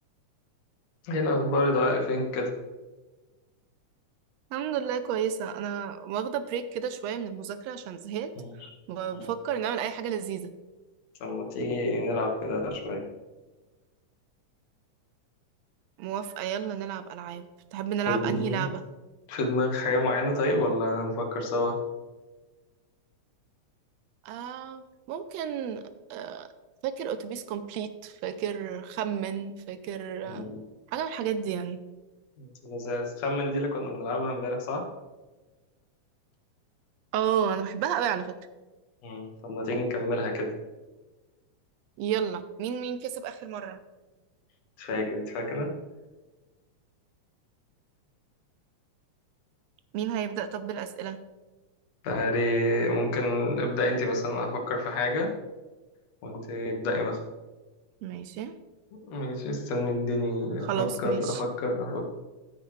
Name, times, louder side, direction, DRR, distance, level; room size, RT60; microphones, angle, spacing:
voice 1, 1.0-2.5 8.4-8.5 9.1-9.3 11.2-13.0 18.1-18.7 19.3-21.8 30.3-30.6 32.4-34.8 39.0-40.5 44.8-45.7 52.0-55.3 56.2-57.2 59.1-62.0, left 1 dB, 60° left, 1 dB, 2.6 m, -28 dB
voice 2, 4.5-8.3 8.6-10.5 16.0-17.4 17.7-18.8 24.2-26.5 26.8-30.5 30.9-31.8 37.1-38.3 42.0-43.8 49.9-51.2 58.0-58.5 60.6-61.4, right 8 dB, 80° right, 11 dB, 1.5 m, -32 dB
15.5 x 6.6 x 3.2 m, 1.2 s
omnidirectional pair, 3.5 m